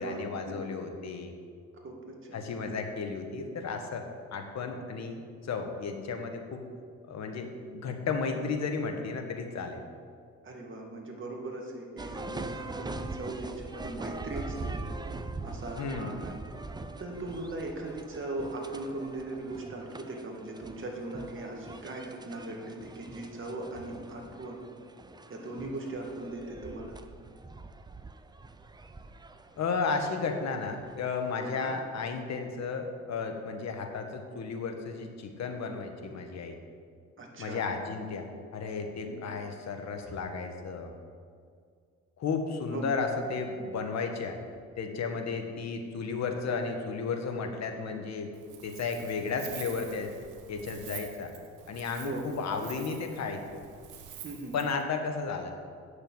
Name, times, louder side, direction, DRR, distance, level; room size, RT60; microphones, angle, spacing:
voice 1, 0.0-1.3 2.3-4.1 4.3-6.6 7.1-9.8 15.8-16.2 29.6-36.6 37.4-38.2 38.5-40.9 42.2-44.4 44.8-48.3 48.6-50.1 50.5-51.3 51.7-53.6 54.5-55.5, left 4 dB, 60° left, 4 dB, 1.5 m, -33 dB
voice 2, 1.8-2.4 10.4-14.8 15.4-16.4 17.0-24.6 25.3-27.0 31.4-31.8 37.2-37.6 39.1-39.2 42.7-42.8 49.3-49.4 52.0-52.3 54.2-54.5, right 2 dB, 40° right, 0 dB, 2.3 m, -39 dB
sound 1, 12.0-31.4, right 2 dB, 15° right, 0.6 m, -43 dB
Wind, 48.3-54.8, right 9 dB, 80° right, 1.2 m, -47 dB
9.0 x 6.7 x 7.8 m, 2.2 s
cardioid pair, 90°, 30 cm